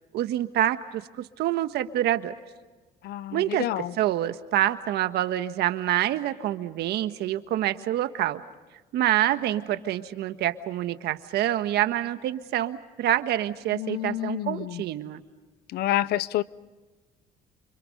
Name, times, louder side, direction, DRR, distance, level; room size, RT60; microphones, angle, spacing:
voice 1, 0.1-2.3 3.3-8.4 8.9-15.2, right 13 dB, 75° right, 1.5 m, -27 dB
voice 2, 3.0-3.9 13.7-14.8 15.7-16.4, left 14 dB, 70° left, 0.7 m, -28 dB
29.5 x 27.0 x 5.4 m
cardioid pair, 110°, 17 cm